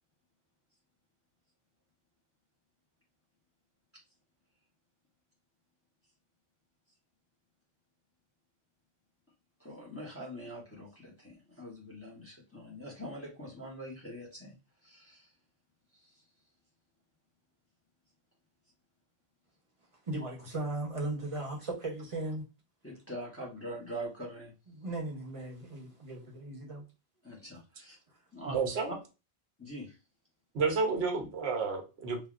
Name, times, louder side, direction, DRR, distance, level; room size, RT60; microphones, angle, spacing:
voice 1, 9.6-14.5 14.8-15.3 16.0-16.1 22.8-24.5 27.2-28.0 28.3-28.6 29.6-30.0, equal, 15° left, 0.9 m, -43 dB
voice 2, 20.1-22.4 24.7-26.8 31.7-31.8, right 2 dB, 35° right, 0.9 m, -37 dB
voice 3, 28.5-28.9 30.5-32.2, right 4 dB, 85° right, 1.0 m, -30 dB
3.4 x 2.3 x 2.4 m
omnidirectional pair, 1.0 m